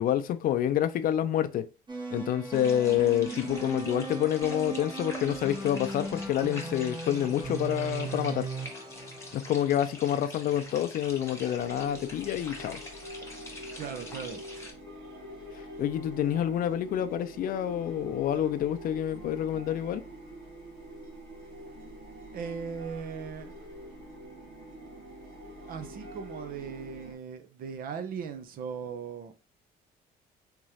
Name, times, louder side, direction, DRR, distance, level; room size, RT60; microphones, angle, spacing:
voice 1, 0.0-1.7 2.1-8.5 9.3-12.8 15.8-20.0, left 11 dB, 55° left, 0.4 m, -28 dB
sound 1, 1.9-10.1, right 3 dB, 25° right, 1.4 m, -38 dB
sound 2, 2.5-14.7, left 2 dB, 15° left, 1.2 m, -45 dB
sound 3, 11.5-27.1, right 1 dB, 90° right, 1.7 m, -45 dB
voice 2, 13.8-14.4 22.3-23.5 25.7-29.3, right 6 dB, 60° right, 0.7 m, -38 dB
3.6 x 3.1 x 2.7 m
cardioid pair, 110°, 17 cm